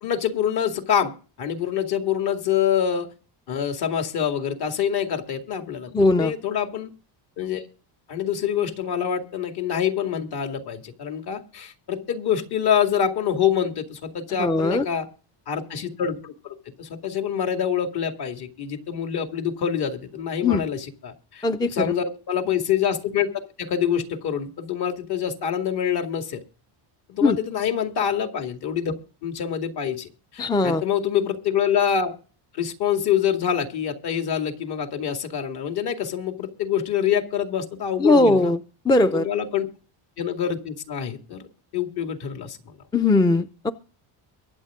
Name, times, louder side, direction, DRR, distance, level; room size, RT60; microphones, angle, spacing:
voice 1, 0.0-1.1 1.4-3.1 3.5-6.9 7.4-7.7 8.1-15.1 15.5-23.3 23.6-26.4 27.1-28.9 29.2-32.1 32.5-38.5 39.1-39.7 40.2-41.5 41.7-42.8, left 8 dB, 55° left, 5 dB, 2.4 m, -26 dB
voice 2, 5.9-6.3 14.4-14.8 20.4-20.6 21.4-21.9 27.2-27.4 30.4-30.8 38.0-38.6 38.8-39.3 42.9-43.7, left 2 dB, 10° left, 10 dB, 0.5 m, -19 dB
23.0 x 8.1 x 3.7 m, 0.38 s
cardioid pair, 130°, 45 cm